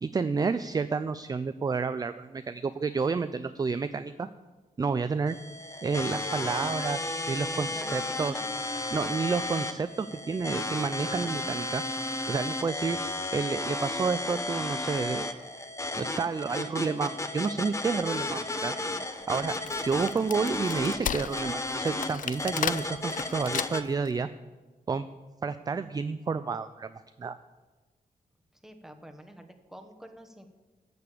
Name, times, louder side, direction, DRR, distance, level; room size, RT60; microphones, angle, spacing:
voice 1, 0.0-4.3 4.8-5.4 5.8-8.4 8.9-11.8 12.3-13.0 13.3-15.3 16.0-18.7 19.3-19.6 19.8-24.3 24.9-25.1 25.4-26.9 27.2-27.4, right 5 dB, 25° right, 12 dB, 0.3 m, -30 dB
sound 1, 5.3-23.8, left 2 dB, 20° left, 0.8 m, -34 dB
voice 2, 7.5-8.6 28.6-30.5, equal, 5° right, 6 dB, 1.1 m, -48 dB
Wood, 19.3-24.1, left 9 dB, 60° left, 0.4 m, -35 dB
13.0 x 6.8 x 8.4 m, 1.2 s
wide cardioid pair, 145°, 16 cm